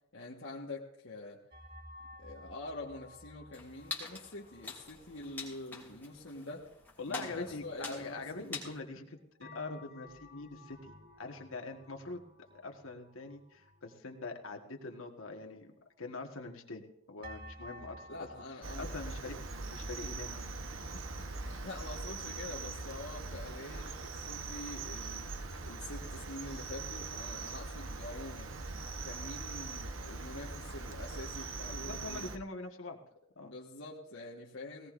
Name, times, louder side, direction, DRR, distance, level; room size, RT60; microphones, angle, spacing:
voice 1, 0.1-1.4 2.2-6.6 7.1-8.5 15.4-15.6 18.1-18.9 19.3-19.4 20.9-28.5 29.0-32.3 33.4-34.9, left 2 dB, 65° left, -4 dB, 1.4 m, -46 dB
sound 1, 1.5-8.3 8.6-8.7 9.4-15.4 15.9-16.0 17.2-18.5, left 1 dB, 45° right, 2.3 m, -54 dB
sound 2, 3.5-8.8, left 4 dB, 10° left, 2.8 m, -46 dB
voice 2, 7.0-15.7 16.0-18.3 18.8-20.3 31.7-33.0 33.3-33.5, left 3 dB, 80° left, 3 dB, 1.5 m, -44 dB
Cricket, 18.6-32.4, right 3 dB, 70° right, 1.1 m, -41 dB
18.0 x 18.0 x 2.6 m, 0.75 s
head